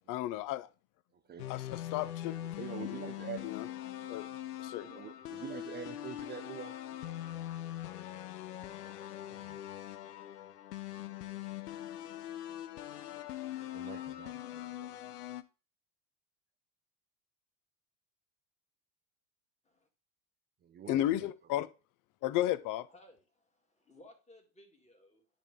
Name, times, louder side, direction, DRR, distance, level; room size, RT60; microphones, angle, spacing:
voice 1, 0.1-0.7 1.5-2.6 2.9-3.0 3.4-3.7 4.1-4.3 4.6-5.0 20.9-21.7 22.2-22.9, left 13 dB, 45° left, 0.6 m, -33 dB
sound 1, 1.4-15.4, left 13 dB, 90° left, 0.6 m, -42 dB
voice 2, 2.4-3.7 4.8-6.7 9.3-9.6 13.6-14.9 20.6-21.3, right 8 dB, 25° right, 0.4 m, -46 dB
voice 3, 22.9-25.3, left 1 dB, 15° left, 2.0 m, -60 dB
9.9 x 3.5 x 3.6 m
hypercardioid pair, 80°, 45 cm